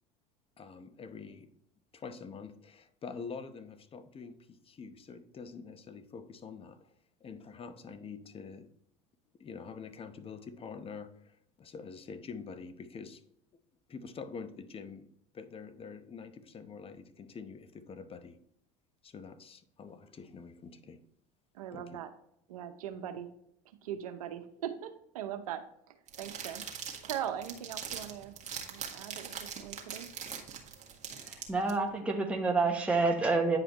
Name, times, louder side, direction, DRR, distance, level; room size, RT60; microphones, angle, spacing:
voice 1, 0.6-1.5 1.9-6.9 7.2-8.7 9.4-13.2 13.9-15.1 15.3-18.4 19.0-21.0 21.7-22.0, left 5 dB, 30° left, 11 dB, 0.9 m, -46 dB
voice 2, 21.5-22.1 22.5-23.3 23.8-25.6 26.2-26.6 27.0-28.4 28.7-30.1, right 10 dB, 90° right, 9 dB, 0.8 m, -40 dB
sound 1, 26.1-31.7, right 7 dB, 40° right, 1.6 m, -42 dB
voice 3, 31.2-33.6, right 3 dB, 5° right, 1 dB, 1.1 m, -28 dB
9.5 x 5.0 x 3.0 m, 0.72 s
hypercardioid pair, 90°, 18 cm